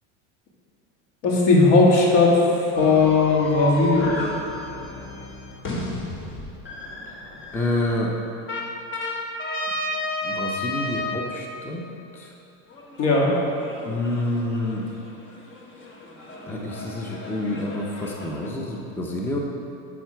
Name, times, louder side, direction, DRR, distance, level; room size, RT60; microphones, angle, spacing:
voice 1, 1.2-2.4 2.8-4.1 13.0-13.3, left 3 dB, 70° left, -2 dB, 2.0 m, -17 dB
sound 1, 2.7-7.9 8.5-11.2 12.7-18.5, left 2 dB, 30° left, 1.1 m, -33 dB
voice 2, 7.5-8.1 10.2-11.9 12.1-12.4 13.9-14.9 16.4-19.4, left 1 dB, 5° left, -1 dB, 0.7 m, -28 dB
9.0 x 6.0 x 4.5 m, 2.8 s
supercardioid pair, 130°, 38 cm